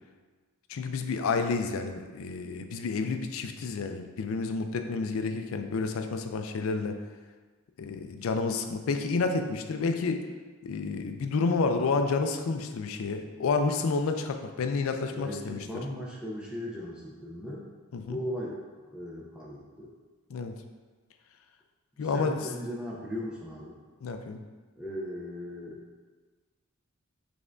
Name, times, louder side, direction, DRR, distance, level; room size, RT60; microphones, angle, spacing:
voice 1, 0.7-7.0 7.8-10.2 10.6-15.6 17.9-18.2 20.3-20.5 22.0-22.3 24.0-24.4, left 4 dB, 70° left, 7 dB, 0.4 m, -30 dB
voice 2, 15.1-17.7 18.1-19.9 22.0-23.8 24.8-25.8, equal, 5° right, -5 dB, 0.5 m, -38 dB
5.3 x 3.4 x 2.5 m, 1.4 s
head